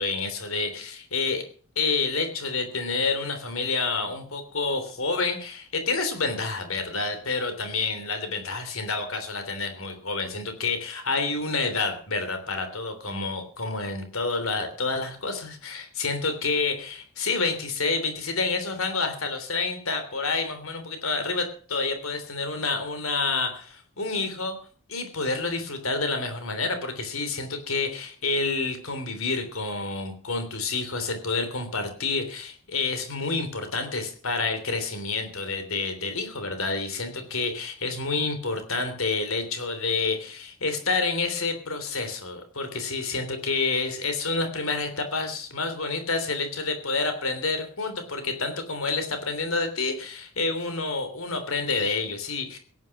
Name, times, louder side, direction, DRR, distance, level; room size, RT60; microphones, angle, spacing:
voice 1, 0.0-1.4 1.7-24.6 24.9-52.6, left 3 dB, 70° left, 8 dB, 3.3 m, -28 dB
17.0 x 9.8 x 5.9 m, 0.44 s
head